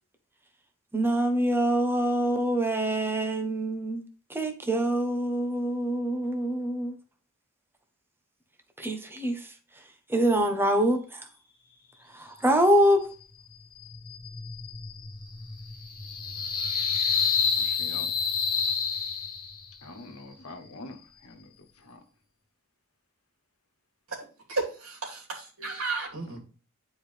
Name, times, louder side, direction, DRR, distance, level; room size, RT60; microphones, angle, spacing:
voice 1, 0.9-4.0 4.3-6.9 8.8-9.4 10.1-11.2 12.2-13.1, right 1 dB, 10° right, 1.0 m, -25 dB
sound 1, 13.8-19.7, left 6 dB, 45° left, 1.7 m, -29 dB
voice 2, 17.6-18.1 19.8-21.0 21.2-21.4 21.8-22.0, left 2 dB, 80° left, 1.3 m, -44 dB
voice 3, 24.1-26.4, right 3 dB, 70° right, 2.8 m, -34 dB
9.9 x 4.7 x 3.4 m
head